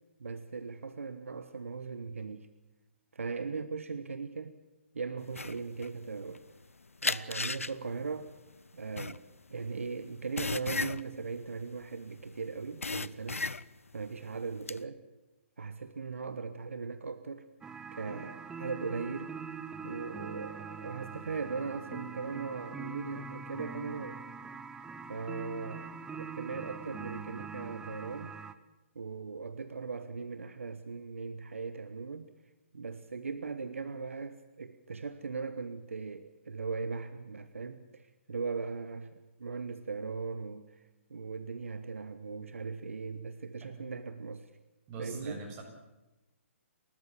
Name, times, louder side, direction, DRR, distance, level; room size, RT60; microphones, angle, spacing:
voice 1, 0.2-2.5 3.1-4.5 4.9-6.4 7.0-8.3 8.7-9.2 9.5-13.4 13.9-15.0 15.6-17.5 17.9-19.3 19.8-24.3 25.1-28.3 28.9-32.3 32.7-40.8 41.1-44.5 45.0-45.4, right 4 dB, 75° right, 11 dB, 1.2 m, -39 dB
sound 1, 5.3-6.6 7.0-12.3 12.6-13.9 14.3-14.8, left 3 dB, 90° left, 0.6 m, -35 dB
sound 2, 17.6-28.5, right 5 dB, 10° right, 0.9 m, -43 dB
voice 2, 44.9-45.6, right 3 dB, 30° right, 1 dB, 6.9 m, -42 dB
29.5 x 13.5 x 7.6 m, 1.0 s
figure-of-eight pair, 135°, 7 cm